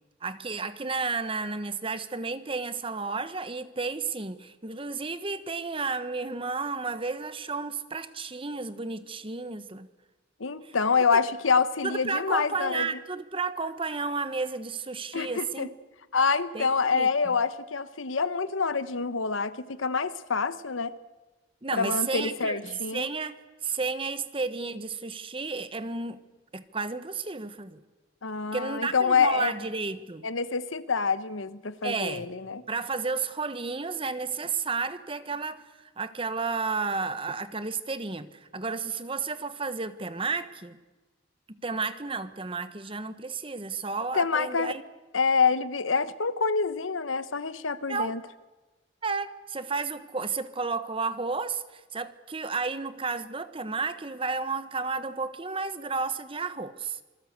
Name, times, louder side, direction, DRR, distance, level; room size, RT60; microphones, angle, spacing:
voice 1, 0.2-9.9 11.8-15.7 16.5-17.1 21.6-26.2 26.5-27.8 28.5-30.3 31.8-32.3 32.7-35.7 36.0-40.8 41.5-44.8 47.9-48.1 49.0-57.0, right 4 dB, 25° right, 1.1 m, -32 dB
voice 2, 10.4-12.9 15.1-15.7 16.1-20.9 21.7-23.1 28.2-29.5 30.2-32.6 44.1-44.8 45.1-48.2, left 5 dB, 85° left, 1.1 m, -26 dB
27.0 x 20.5 x 8.1 m
head